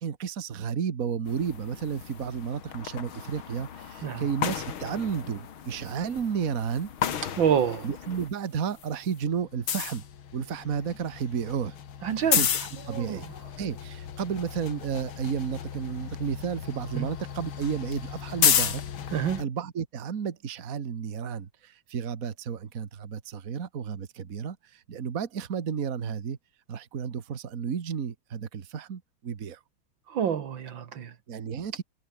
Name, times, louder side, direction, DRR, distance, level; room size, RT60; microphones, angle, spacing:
voice 1, 0.0-6.9 7.8-10.0 10.3-11.7 12.3-13.3 13.6-18.8 19.4-26.4 26.7-29.6 31.3-31.8, right 7 dB, 45° right, 1.8 m, -32 dB
sound 1, 1.3-8.3 8.6-19.4, left 8 dB, 85° left, 2.5 m, -33 dB
voice 2, 7.4-7.9 12.0-12.4 12.9-13.2 17.0-17.1 19.1-19.4 30.1-31.1, right 8 dB, 65° right, 2.1 m, -27 dB
omnidirectional pair, 2.2 m